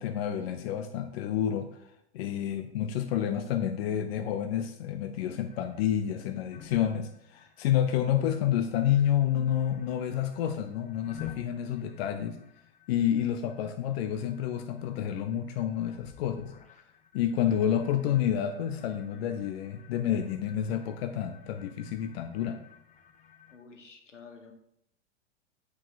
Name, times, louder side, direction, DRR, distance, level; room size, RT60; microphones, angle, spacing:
voice 1, 0.0-1.8 2.1-12.4 12.9-16.5 17.1-22.6, left 10 dB, 60° left, 8 dB, 0.7 m, -29 dB
sound 1, 5.5-23.6, left 10 dB, 20° left, 0.8 m, -52 dB
voice 2, 23.5-24.5, left 5 dB, 90° left, 5 dB, 1.1 m, -50 dB
8.6 x 4.9 x 4.2 m, 0.76 s
figure-of-eight pair, 90°, 35 cm